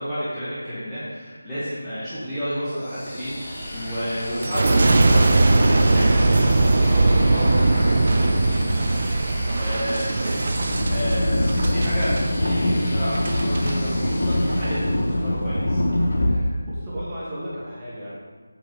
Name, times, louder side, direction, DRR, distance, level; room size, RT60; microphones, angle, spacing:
voice 1, 0.0-8.6 9.2-15.8 16.3-16.5, equal, 5° left, -19 dB, 2.0 m, -31 dB
sound 1, 2.7-15.4, equal, 20° left, 2.1 m, -35 dB
Boom, 4.4-13.8 14.3-14.8, right 2 dB, 45° right, 0.8 m, -20 dB
sound 2, 10.5-16.3, left 1 dB, 50° left, 1.5 m, -23 dB
voice 2, 16.6-18.1, equal, 15° right, -11 dB, 1.8 m, -34 dB
8.8 x 4.5 x 6.3 m, 1.5 s
figure-of-eight pair, 165°, 0 cm